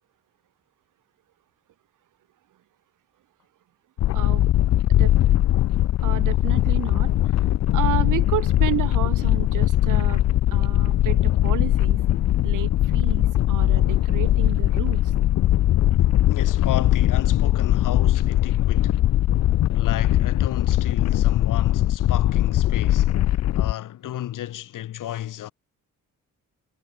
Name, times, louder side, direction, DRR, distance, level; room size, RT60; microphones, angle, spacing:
sound 1, 4.0-23.7, left 13 dB, 60° left, 0.5 m, -20 dB
voice 1, 4.1-4.5 4.9-5.1 6.0-7.1 7.7-10.2 10.5-12.0 12.4-15.1, right 13 dB, 75° right, 0.8 m, -31 dB
voice 2, 16.3-19.0 19.7-25.5, left 13 dB, 80° left, 1.2 m, -33 dB
cardioid pair, 125°, 31 cm